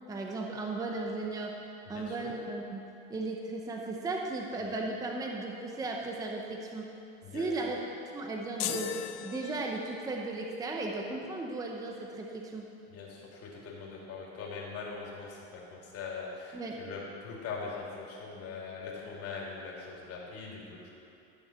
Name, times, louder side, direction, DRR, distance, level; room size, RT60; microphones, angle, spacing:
voice 1, 0.1-1.6 1.9-2.8 3.1-6.9 7.3-7.8 8.1-9.0 9.2-12.7 16.5-16.8, right 2 dB, 10° right, 1 dB, 0.7 m, -36 dB
voice 2, 1.9-2.3 7.2-7.8 12.9-15.4 15.7-20.9, left 4 dB, 35° left, -3 dB, 2.9 m, -41 dB
sound 1, 8.6-10.1, left 12 dB, 50° left, 0.7 m, -38 dB
14.0 x 7.1 x 6.2 m, 2.7 s
supercardioid pair, 145°, 41 cm